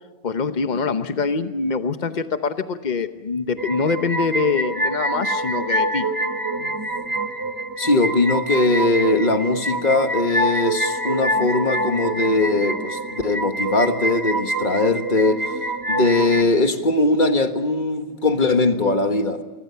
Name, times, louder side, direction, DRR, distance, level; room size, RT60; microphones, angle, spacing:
voice 1, 0.2-6.1, left 5 dB, 75° left, 9 dB, 0.4 m, -24 dB
sound 1, 3.6-16.4, right 1 dB, 15° right, 0.9 m, -26 dB
voice 2, 7.8-15.5 15.9-19.4, left 2 dB, 25° left, 7 dB, 1.4 m, -20 dB
29.5 x 21.5 x 5.7 m, 1.4 s
omnidirectional pair, 2.2 m